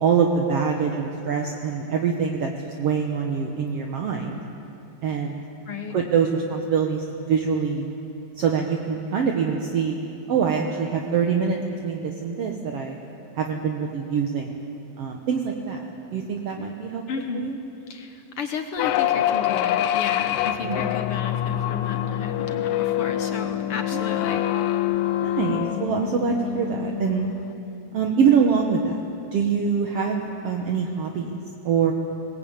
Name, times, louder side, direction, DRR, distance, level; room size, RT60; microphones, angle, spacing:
voice 1, 0.0-4.4 5.0-5.4 5.9-7.9 8.4-10.0 10.3-11.6 11.8-13.0 13.4-14.6 15.0-15.8 16.1-17.0 17.3-17.6 20.6-20.8 23.9-24.2 25.2-27.3 27.9-28.9 29.3-31.3 31.7-31.9, right 6 dB, 60° right, 2 dB, 2.0 m, -24 dB
voice 2, 17.1-17.5 17.9-24.5, left 6 dB, 65° left, 6 dB, 1.5 m, -33 dB
sound 1, 18.8-27.5, left 12 dB, 80° left, 2.1 m, -25 dB
21.5 x 19.5 x 8.7 m, 2.8 s
omnidirectional pair, 3.4 m